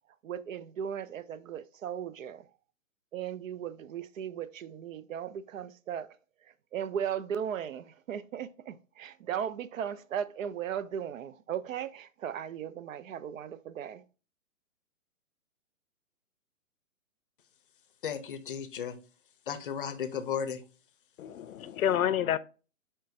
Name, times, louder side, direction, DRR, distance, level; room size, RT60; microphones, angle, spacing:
voice 1, 0.2-2.5 3.1-6.2 6.7-14.0, right 8 dB, 70° right, 0.6 m, -37 dB
voice 2, 18.0-19.0 19.5-20.6, left 7 dB, 40° left, 0.5 m, -34 dB
voice 3, 21.2-22.4, left 10 dB, 85° left, 0.5 m, -28 dB
4.4 x 4.4 x 2.5 m
hypercardioid pair, 155°, 41 cm